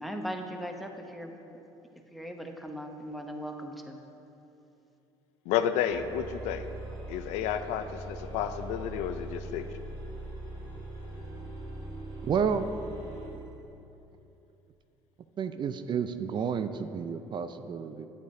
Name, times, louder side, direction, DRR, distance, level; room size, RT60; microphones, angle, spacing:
voice 1, 0.0-1.3 1.9-4.0, equal, ahead, 3 dB, 0.8 m, -39 dB
voice 2, 5.5-6.7 7.1-9.7, left 9 dB, 70° left, 9 dB, 0.4 m, -31 dB
sound 1, 5.9-13.4, right 2 dB, 70° right, 1.9 m, -41 dB
voice 3, 12.2-12.7 15.4-18.1, right 6 dB, 40° right, 10 dB, 0.4 m, -30 dB
9.4 x 8.2 x 2.7 m, 2.9 s
hypercardioid pair, 70°, 12 cm